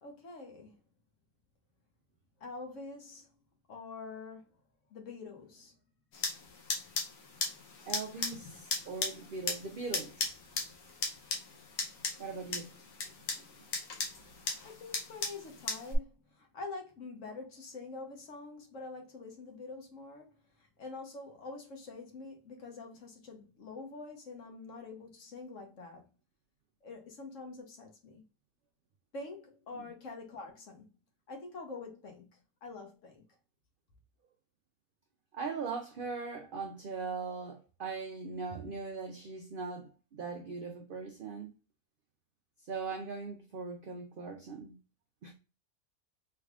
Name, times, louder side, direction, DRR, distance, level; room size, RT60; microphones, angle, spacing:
voice 1, 0.0-0.7 2.4-3.4 3.7-4.5 4.9-5.8 14.6-26.1 26.8-28.2 29.1-30.8 31.3-33.2, left 3 dB, 60° left, 1.2 m, -46 dB
sound 1, 6.1-16.0, left 4 dB, 80° left, 1.3 m, -38 dB
voice 2, 7.9-10.3 12.2-12.7 29.7-29.9 35.3-41.5 42.6-44.8 45.2-45.3, right 4 dB, 80° right, 0.4 m, -40 dB
3.4 x 3.3 x 2.3 m
omnidirectional pair, 1.5 m